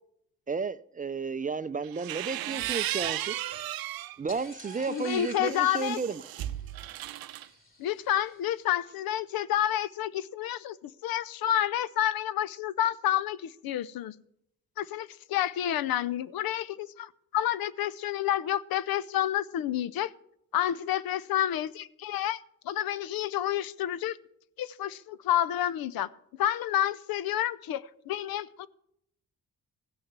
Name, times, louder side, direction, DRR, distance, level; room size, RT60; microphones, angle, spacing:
voice 1, 0.5-3.4 4.2-6.2, right 5 dB, 25° right, 0.4 m, -32 dB
sound 1, 1.8-4.2 4.6-7.5, right 13 dB, 85° right, 0.6 m, -35 dB
sound 2, 4.3-8.6, left 1 dB, 35° left, 2.9 m, -49 dB
voice 2, 4.9-6.0 7.8-14.1 14.8-20.1 20.5-24.2 24.6-26.1 26.4-28.7, left 11 dB, 85° left, 0.6 m, -29 dB
15.5 x 6.4 x 6.0 m
cardioid pair, 90°, 35 cm